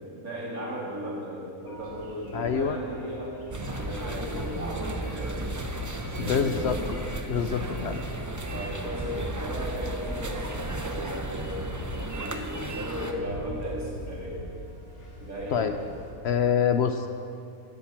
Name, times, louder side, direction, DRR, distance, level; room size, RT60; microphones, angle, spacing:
voice 1, 0.0-5.5 6.0-6.8 8.5-11.6 12.1-14.4 15.2-15.9, equal, 85° right, -5 dB, 3.5 m, -36 dB
sound 1, 1.7-16.1, left 1 dB, 85° left, 2.8 m, -43 dB
voice 2, 2.3-2.8 6.2-6.8 7.3-8.0 15.5-15.7 16.2-17.1, left 7 dB, 60° left, 8 dB, 0.7 m, -25 dB
sound 2, 3.5-13.1, right 1 dB, 20° right, 0.5 m, -34 dB
10.5 x 10.0 x 7.3 m, 2.6 s
omnidirectional pair, 1.5 m